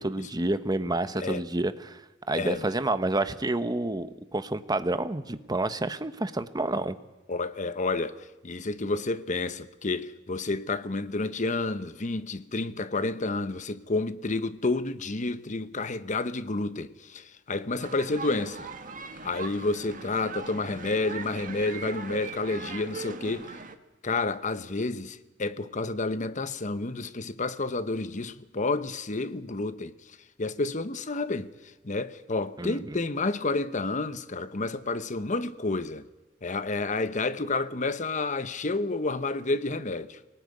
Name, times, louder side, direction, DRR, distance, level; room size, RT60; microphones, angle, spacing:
voice 1, 0.0-2.0 2.3-7.0 32.6-33.0, right 2 dB, 20° right, 1.0 m, -29 dB
voice 2, 0.9-1.4 2.3-2.7 7.3-18.7 19.2-23.6 24.0-29.9 30.4-31.5 31.8-36.1 36.4-40.2, left 3 dB, 40° left, 1.0 m, -30 dB
sound 1, 17.8-23.8, right 4 dB, 45° right, 1.6 m, -40 dB
23.5 x 18.5 x 9.6 m
head